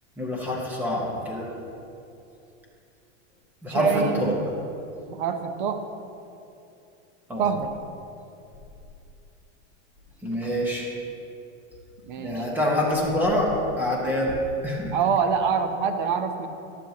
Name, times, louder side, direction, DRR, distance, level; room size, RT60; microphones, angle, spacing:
voice 1, 0.2-1.5 3.6-4.3 7.3-7.4 10.2-10.9 12.2-13.5 13.8-14.3 14.6-14.9, left 1 dB, 5° right, -3 dB, 1.2 m, -26 dB
voice 2, 3.7-4.4 5.1-5.8 7.4-7.7 12.0-12.5 14.9-16.5, right 6 dB, 40° right, 7 dB, 0.8 m, -25 dB
13.5 x 12.0 x 2.9 m, 2.7 s
supercardioid pair, 175°, 38 cm